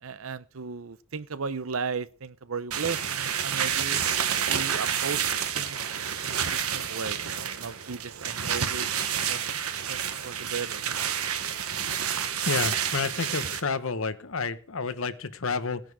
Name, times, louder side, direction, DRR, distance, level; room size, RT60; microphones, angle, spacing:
voice 1, 0.0-4.0 4.5-8.9 9.3-9.4 9.8-10.8, right 5 dB, 70° right, 0.7 m, -36 dB
sound 1, 2.7-13.6, right 8 dB, 85° right, 1.3 m, -29 dB
voice 2, 12.4-15.8, left 4 dB, 65° left, 1.1 m, -30 dB
17.5 x 10.5 x 4.8 m
head